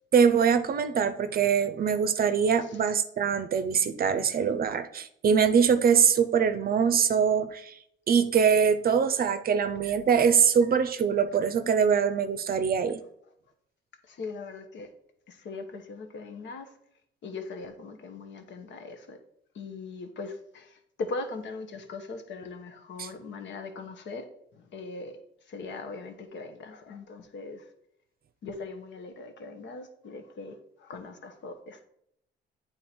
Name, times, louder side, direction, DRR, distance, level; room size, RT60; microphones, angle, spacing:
voice 1, 0.1-7.7 8.1-13.0 23.0-23.1, right 7 dB, 50° right, 11 dB, 0.6 m, -23 dB
voice 2, 14.0-14.9 15.3-16.7 17.2-19.2 19.5-24.3 24.5-25.2 25.5-27.7 28.4-31.8, left 3 dB, 65° left, 6 dB, 1.1 m, -40 dB
8.4 x 3.8 x 4.4 m, 0.74 s
cardioid pair, 90°, 20 cm